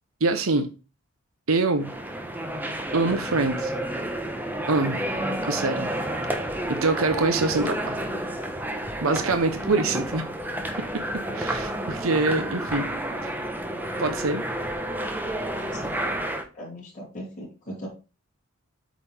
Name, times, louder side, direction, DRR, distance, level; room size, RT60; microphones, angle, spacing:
voice 1, 0.2-0.7 1.5-1.9 2.9-3.7 4.7-5.0 5.4-5.9 6.7-8.0 9.0-10.2 11.3-12.9 13.2-13.3 14.0-14.4, right 3 dB, 80° right, 0.9 m, -24 dB
sound 1, 1.8-16.4, right 1 dB, 10° right, 1.1 m, -30 dB
voice 2, 15.5-15.9 16.5-17.9, equal, 35° left, 3.7 m, -38 dB
8.6 x 5.3 x 3.6 m
head